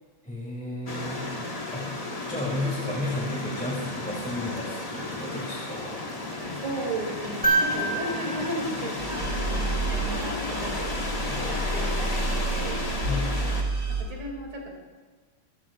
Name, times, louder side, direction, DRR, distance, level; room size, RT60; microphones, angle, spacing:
voice 1, 0.2-1.3 1.7-2.0 2.3-6.0 11.3-11.4 13.0-13.4, left 2 dB, 5° left, -4 dB, 1.9 m, -33 dB
sound 1, 0.9-13.6, left 2 dB, 30° left, 0.7 m, -33 dB
voice 2, 6.6-12.8 13.9-14.7, right 1 dB, 75° right, 0 dB, 3.3 m, -35 dB
sound 2, 7.4-9.8 11.8-11.9, right 2 dB, 15° right, 2.4 m, -28 dB
sound 3, 9.0-14.0, right 2 dB, 40° right, 2.4 m, -30 dB
22.5 x 12.5 x 2.4 m, 1.4 s
omnidirectional pair, 2.4 m